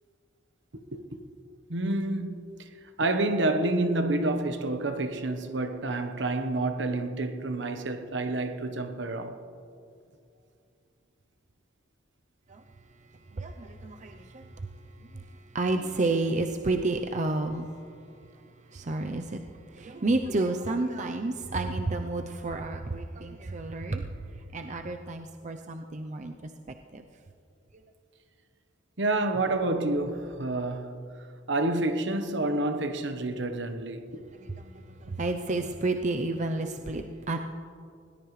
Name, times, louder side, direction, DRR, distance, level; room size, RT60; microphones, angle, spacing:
voice 1, 0.7-1.2 1.7-2.7 3.0-9.4 29.0-34.2, right 2 dB, 70° right, 1.2 m, -29 dB
voice 2, 12.5-27.0 27.7-27.8 34.3-37.4, right 2 dB, 40° right, 0.6 m, -31 dB
20.5 x 18.5 x 3.3 m
head